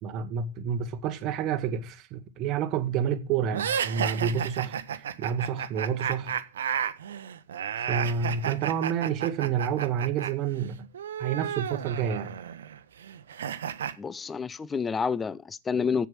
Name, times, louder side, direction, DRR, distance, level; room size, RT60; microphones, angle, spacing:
voice 1, 0.0-6.4 7.8-10.8 11.2-12.3, right 7 dB, 40° right, 1.1 m, -29 dB
sound 1, 3.5-10.3 10.6-13.9, right 8 dB, 65° right, 1.0 m, -32 dB
voice 2, 14.0-16.1, left 6 dB, 15° left, 0.6 m, -29 dB
8.3 x 7.5 x 7.7 m
figure-of-eight pair, 90°, 0 cm